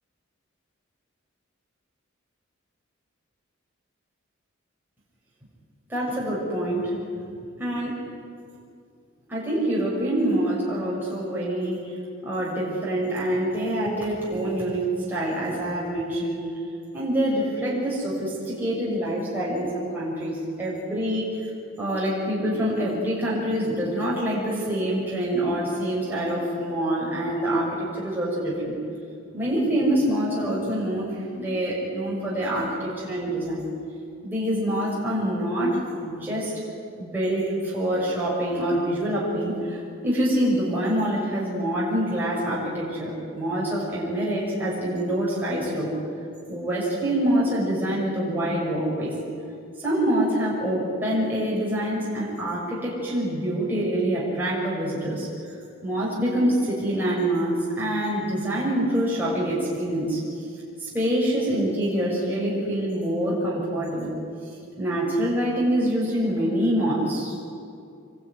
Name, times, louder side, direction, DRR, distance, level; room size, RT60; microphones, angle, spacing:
voice 1, 5.9-6.9 7.6-8.0 9.3-11.9 12.2-16.4 16.9-21.4 21.8-28.8 29.3-31.1 31.3-33.7 34.2-36.5 37.0-45.9 46.5-49.1 49.8-55.3 55.8-60.2 60.8-64.1 64.8-67.5, right 1 dB, 10° right, -7 dB, 6.4 m, -25 dB
26.0 x 21.5 x 9.6 m, 2.4 s
head